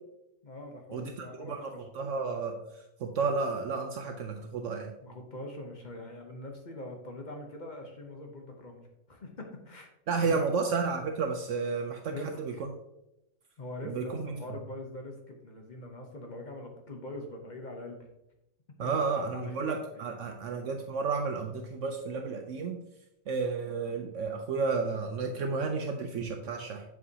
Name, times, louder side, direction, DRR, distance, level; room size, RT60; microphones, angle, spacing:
voice 1, 0.4-1.9 5.0-9.9 10.2-10.4 12.1-12.7 13.6-18.0 18.8-20.1, left 1 dB, 40° left, 2 dB, 0.8 m, -43 dB
voice 2, 1.4-2.6 3.0-4.9 10.1-12.5 13.8-14.3 18.8-22.8 23.3-26.8, right 4 dB, 70° right, 4 dB, 0.9 m, -32 dB
7.5 x 4.8 x 2.8 m, 0.88 s
omnidirectional pair, 1.4 m